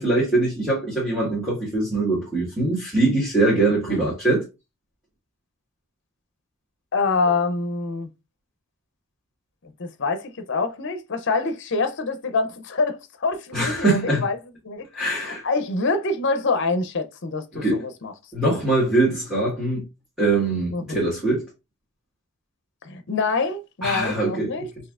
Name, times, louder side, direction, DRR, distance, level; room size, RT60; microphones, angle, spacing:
voice 1, 0.0-4.4 13.5-14.2 14.9-15.4 17.5-17.8 18.3-19.8 20.2-21.4 23.8-24.5, right 2 dB, 5° right, 1.6 m, -22 dB
voice 2, 6.9-8.1 9.8-14.4 14.6-18.1 20.7-21.0 22.8-24.7, left 3 dB, 55° left, 0.6 m, -26 dB
5.5 x 2.7 x 2.4 m
head